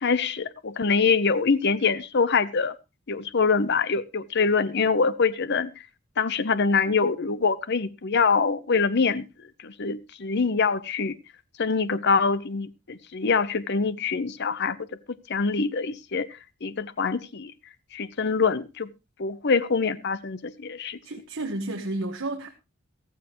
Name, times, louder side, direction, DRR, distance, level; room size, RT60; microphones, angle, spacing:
voice 1, 0.0-2.7 3.1-5.7 6.2-9.3 9.6-11.1 11.6-14.8 15.3-16.3 16.6-17.5 17.9-18.9 19.2-21.0, left 5 dB, 50° left, 0.7 m, -24 dB
voice 2, 21.0-22.5, right 2 dB, 60° right, 1.4 m, -31 dB
14.5 x 14.5 x 3.0 m
head